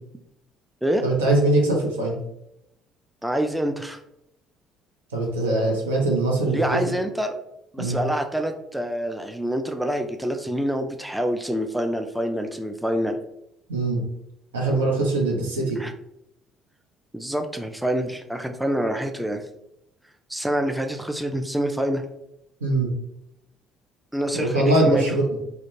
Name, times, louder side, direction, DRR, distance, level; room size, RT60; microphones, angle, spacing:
voice 1, 1.0-2.2 5.1-6.9 7.8-8.0 13.7-14.0 14.5-15.8 22.6-22.9 24.3-25.4, right 2 dB, 80° right, -1 dB, 0.5 m, -22 dB
voice 2, 3.2-4.0 6.5-7.3 7.7-13.2 15.8-15.9 17.1-19.4 20.3-22.0 24.1-25.1, equal, 5° right, 5 dB, 0.3 m, -26 dB
2.4 x 2.1 x 3.0 m, 0.80 s
figure-of-eight pair, 50°, 0 cm